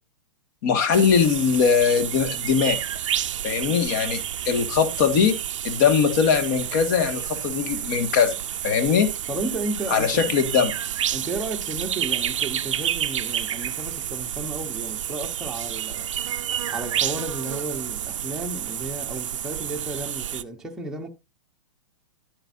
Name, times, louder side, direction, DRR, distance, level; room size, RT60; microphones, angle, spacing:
voice 1, 0.6-2.8 3.4-5.4 5.6-8.4 8.6-9.1 9.9-10.7, left 6 dB, 40° left, 1.9 m, -21 dB
sound 1, 0.9-20.4, right 10 dB, 80° right, 0.7 m, -30 dB
voice 2, 9.3-10.2 11.1-16.1 16.7-21.1, right 2 dB, 5° right, 1.1 m, -33 dB
11.0 x 8.8 x 2.7 m
hypercardioid pair, 165°, 16 cm